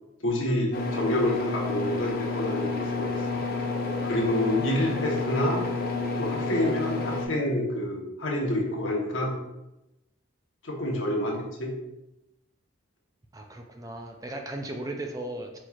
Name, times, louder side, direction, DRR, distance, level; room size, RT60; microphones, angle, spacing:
voice 1, 0.2-3.4 4.0-5.6 6.2-9.3 10.6-11.7, left 1 dB, 80° left, -1 dB, 1.0 m, -28 dB
sound 1, 0.7-7.3, left 3 dB, 45° left, 0.6 m, -30 dB
voice 2, 13.3-15.6, right 1 dB, 15° right, 3 dB, 0.3 m, -37 dB
4.5 x 4.3 x 2.4 m, 0.93 s
head